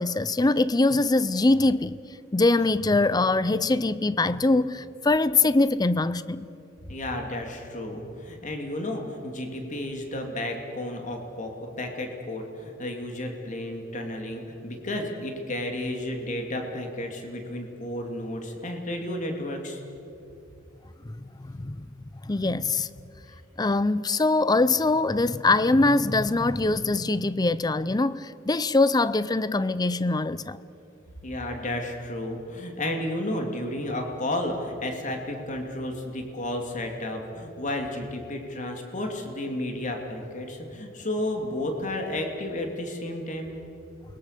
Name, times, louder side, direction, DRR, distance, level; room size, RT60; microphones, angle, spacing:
voice 1, 0.0-2.0 2.3-6.5 21.0-21.2 21.4-21.9 22.2-22.9 23.6-30.6, left 2 dB, 20° left, 0.5 m, -23 dB
voice 2, 6.9-19.8 31.2-43.5, left 1 dB, 40° left, 2.8 m, -32 dB
29.0 x 22.0 x 6.8 m
head